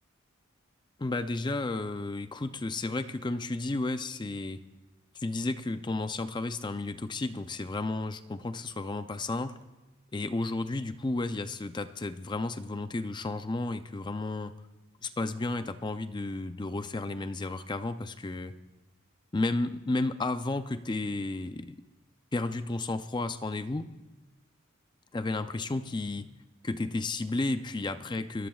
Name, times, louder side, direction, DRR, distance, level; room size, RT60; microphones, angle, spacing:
voice 1, 1.0-4.6 5.1-9.6 10.1-14.5 15.0-18.5 19.3-21.8 22.3-23.9 25.1-26.3 26.6-28.5, left 2 dB, 20° left, 10 dB, 0.4 m, -32 dB
30.0 x 14.5 x 2.4 m, 1.1 s
head